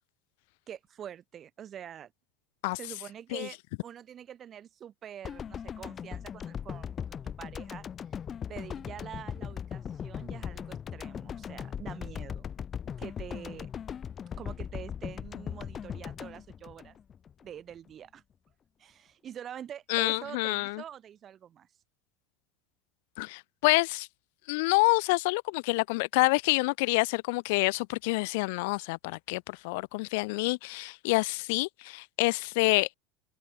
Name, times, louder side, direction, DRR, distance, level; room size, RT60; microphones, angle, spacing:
voice 1, 0.7-2.1 2.7-7.8 8.5-12.5 13.0-13.7 14.4-17.0 17.4-18.2 18.8-21.7, right 9 dB, 35° right, 5.3 m, -45 dB
sound 1, 5.2-17.4 17.7-17.9, left 8 dB, 30° left, 3.0 m, -39 dB
voice 2, 19.9-20.8 23.2-24.1 24.5-32.9, left 26 dB, 70° left, 1.2 m, -27 dB
open air
supercardioid pair, 105°, 0 cm